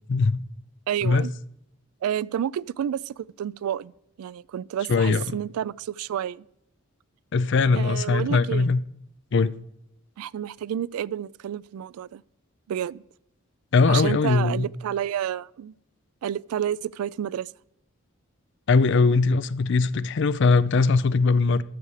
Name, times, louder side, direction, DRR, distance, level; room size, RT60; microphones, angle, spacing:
voice 1, 0.1-0.4 1.0-1.3 4.9-5.2 7.3-8.8 9.3-9.5 13.7-14.7 18.7-21.6, left 4 dB, 55° left, 0.4 m, -20 dB
voice 2, 0.9-1.3 2.0-3.9 4.2-6.4 7.7-8.7 10.2-12.2 12.7-13.0 13.9-15.7 16.2-17.5, right 9 dB, 85° right, 0.3 m, -30 dB
12.5 x 6.8 x 4.8 m
head